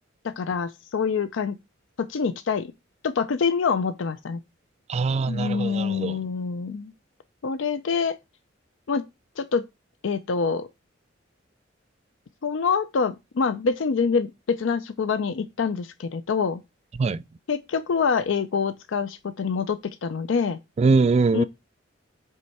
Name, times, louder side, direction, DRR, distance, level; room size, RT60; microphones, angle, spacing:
voice 1, 0.2-1.6 2.0-2.7 3.0-4.4 5.3-6.9 7.4-8.2 8.9-9.0 9.4-9.6 10.0-10.7 12.4-16.6 17.5-20.6 21.3-21.4, left 5 dB, 70° left, 0.4 m, -26 dB
voice 2, 4.9-6.2 17.0-17.2 20.8-21.4, right 4 dB, 35° right, 0.3 m, -22 dB
7.5 x 3.3 x 4.1 m
head